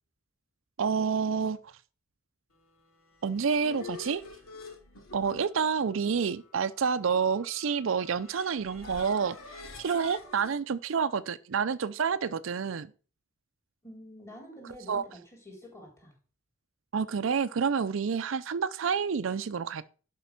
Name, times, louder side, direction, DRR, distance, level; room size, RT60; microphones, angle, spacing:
voice 1, 0.8-1.7 3.2-4.2 5.1-12.9 14.9-15.0 16.9-19.9, right 6 dB, 65° right, 0.5 m, -29 dB
sound 1, 3.0-10.5, left 4 dB, 85° left, 2.7 m, -47 dB
voice 2, 13.8-16.1, equal, 15° left, 3.7 m, -47 dB
11.0 x 5.2 x 5.8 m
head